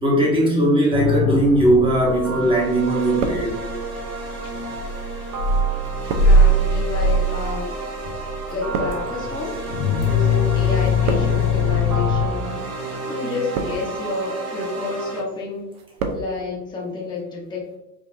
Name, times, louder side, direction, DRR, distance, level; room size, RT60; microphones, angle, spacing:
voice 1, 0.0-3.5, right 1 dB, 10° right, -3 dB, 1.2 m, -18 dB
sound 1, 0.9-12.3, left 2 dB, 55° left, 0.5 m, -21 dB
sound 2, 2.0-15.2, right 3 dB, 30° right, 1.0 m, -31 dB
sound 3, 2.1-2.6 2.9-4.0 4.7-10.3 10.6-11.6 12.3-12.6 13.3-14.1 14.5-15.0 15.3-16.3 16.5-16.6, right 4 dB, 45° right, 0.7 m, -32 dB
voice 2, 6.2-7.7 8.5-9.5 10.0-12.6 13.1-15.7 16.1-17.8, left 3 dB, 10° left, -4 dB, 1.0 m, -29 dB
5.3 x 2.3 x 2.7 m, 0.95 s
hypercardioid pair, 100°, 50 cm